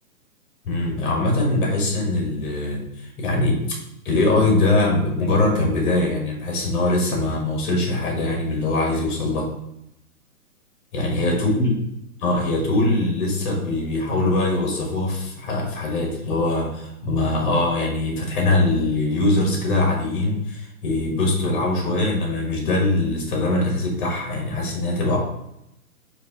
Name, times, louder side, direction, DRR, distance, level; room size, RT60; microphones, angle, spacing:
voice 1, 0.6-3.8 4.0-9.5 10.9-11.8 12.2-25.2, left 2 dB, 35° left, 0 dB, 1.3 m, -22 dB
4.8 x 2.7 x 3.9 m, 0.83 s
hypercardioid pair, 135°, 45 cm